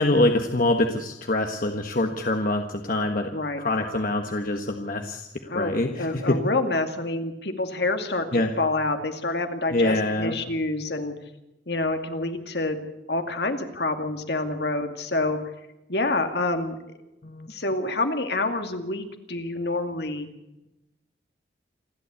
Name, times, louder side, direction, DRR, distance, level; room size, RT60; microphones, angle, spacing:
voice 1, 0.0-6.4 8.3-8.5 9.7-10.4 17.2-17.5, left 2 dB, 50° left, 4 dB, 1.4 m, -25 dB
voice 2, 3.3-3.6 5.5-11.1 11.7-12.8 13.1-15.4 15.9-16.8 17.5-20.3, left 2 dB, 65° left, 6 dB, 2.3 m, -27 dB
28.0 x 12.0 x 8.3 m, 0.93 s
head